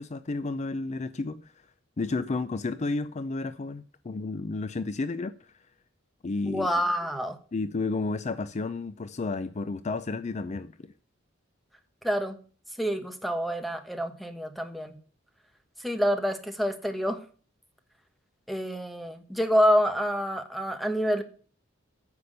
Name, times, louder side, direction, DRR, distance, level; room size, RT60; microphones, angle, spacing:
voice 1, 0.0-1.5 2.0-5.5 6.2-6.7 7.5-10.9, left 3 dB, 35° left, 0.5 m, -32 dB
voice 2, 6.5-7.4 12.0-12.3 12.8-15.0 15.8-17.2 18.5-21.2, equal, ahead, 1.3 m, -27 dB
9.9 x 6.9 x 6.6 m
head